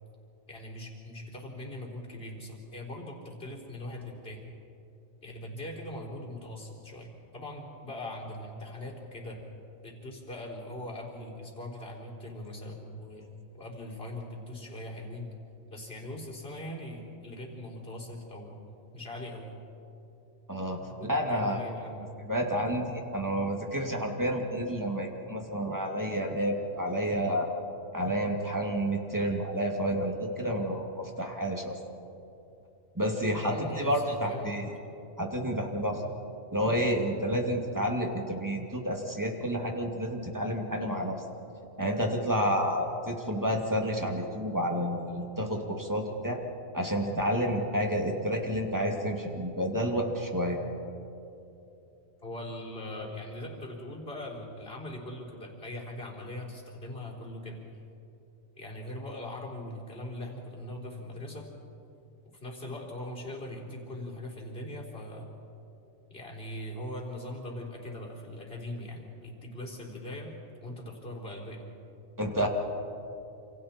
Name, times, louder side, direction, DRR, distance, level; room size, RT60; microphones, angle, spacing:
voice 1, 0.5-4.4 5.2-9.4 9.8-13.3 13.6-15.3 15.7-18.6 18.9-19.5 21.0-22.1 33.4-34.6 52.2-57.6 58.6-61.5 62.4-65.3 66.1-70.3 70.6-71.6, left 1 dB, 45° left, -3 dB, 4.3 m, -41 dB
voice 2, 20.5-21.6 22.3-27.5 27.9-31.7 32.9-34.7 35.2-36.0 36.5-41.2 41.8-46.4 46.7-50.6 72.2-72.5, equal, 15° right, 1 dB, 2.3 m, -30 dB
28.0 x 28.0 x 4.4 m, 2.8 s
omnidirectional pair, 1.4 m